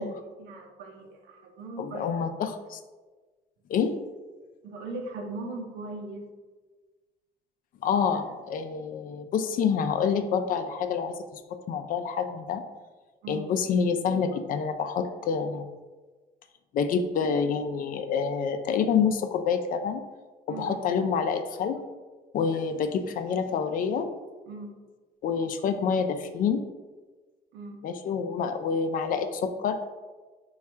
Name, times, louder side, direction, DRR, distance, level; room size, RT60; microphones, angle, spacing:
voice 1, 0.4-2.1 4.6-6.2 13.2-13.5 20.5-20.7 24.5-24.7 27.5-27.8, right 2 dB, 85° right, 2 dB, 0.7 m, -39 dB
voice 2, 1.8-2.8 3.7-4.0 7.8-12.6 13.3-15.7 16.7-20.0 20.5-21.8 22.3-24.1 25.2-26.6 27.8-29.8, left 6 dB, 55° left, 8 dB, 0.4 m, -27 dB
3.4 x 2.3 x 4.2 m, 1.3 s
cardioid pair, 110°, 17 cm